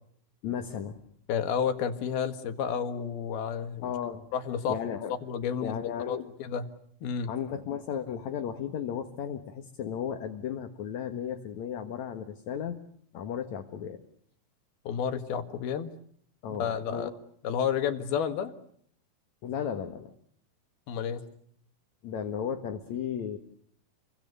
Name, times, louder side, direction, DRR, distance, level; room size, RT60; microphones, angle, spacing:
voice 1, 0.4-1.0 3.8-4.3 4.7-5.2 5.6-6.3 7.3-12.8 13.1-14.0 16.4-17.1 19.4-20.1 22.0-23.4, left 8 dB, 60° left, 5 dB, 2.5 m, -34 dB
voice 2, 1.3-3.9 4.3-4.8 5.2-5.8 6.1-6.7 7.0-7.3 14.9-15.9 16.6-17.1 17.4-18.5 20.9-21.3, left 7 dB, 85° left, 9 dB, 3.7 m, -31 dB
29.5 x 24.0 x 6.8 m, 0.64 s
omnidirectional pair, 4.3 m